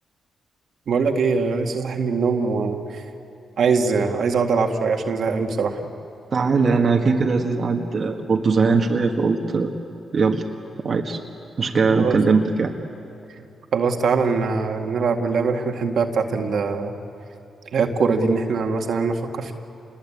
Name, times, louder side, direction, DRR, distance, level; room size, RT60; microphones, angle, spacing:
voice 1, 0.9-3.0 3.6-5.8 12.0-12.2 13.7-16.9 17.7-19.5, right 4 dB, 70° right, 3 dB, 2.1 m, -22 dB
voice 2, 6.3-9.7 10.1-10.5 10.8-11.2 11.6-12.7, right 4 dB, 50° right, 2 dB, 1.8 m, -20 dB
28.0 x 21.5 x 8.7 m, 2.7 s
cardioid pair, 70°, 0 cm